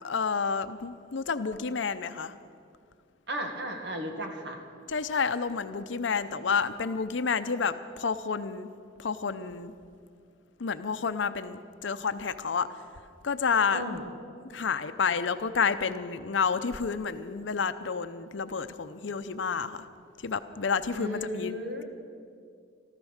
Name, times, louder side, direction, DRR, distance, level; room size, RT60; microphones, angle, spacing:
voice 1, 0.0-2.3 4.9-8.7 9.0-9.7 10.6-12.7 13.2-13.8 14.4-19.9 20.2-21.5, left 5 dB, 75° left, 11 dB, 0.6 m, -30 dB
voice 2, 3.3-4.6 13.7-14.0 20.9-21.8, equal, 60° right, 4 dB, 1.9 m, -34 dB
14.0 x 14.0 x 6.5 m, 2.3 s
head